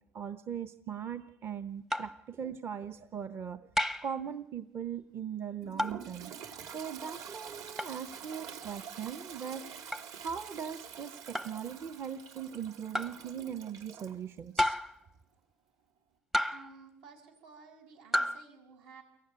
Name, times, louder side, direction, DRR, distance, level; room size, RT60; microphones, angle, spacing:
voice 1, 0.1-3.6 4.0-6.3 6.7-9.7 10.2-14.8, right 8 dB, 35° right, 11 dB, 0.9 m, -39 dB
sound 1, 1.9-2.2 3.8-4.2 5.8-6.1 7.8-8.0 9.9-10.1 11.3-11.6 12.9-13.2 14.6-15.0 16.3-16.8 18.1-18.4, left 1 dB, 5° right, 0.7 m, -31 dB
Toilet flush, 5.6-14.2, right 7 dB, 55° right, 2.4 m, -47 dB
voice 2, 16.5-19.0, right 4 dB, 75° right, 2 dB, 6.9 m, -54 dB
23.0 x 15.0 x 9.6 m, 0.83 s
supercardioid pair, 110°, 7 cm